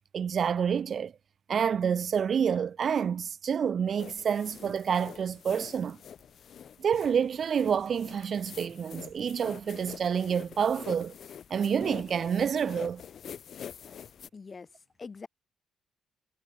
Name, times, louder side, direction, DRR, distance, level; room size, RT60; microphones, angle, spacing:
voice 1, 0.1-1.1 1.5-6.0 6.8-11.1 11.5-13.0, right 7 dB, 50° right, 0.6 m, -28 dB
sound 1, 4.0-14.3, left 8 dB, 60° left, 3.2 m, -46 dB
voice 2, 14.3-15.3, left 4 dB, 35° left, 2.8 m, -44 dB
cardioid pair, 90°, 0 cm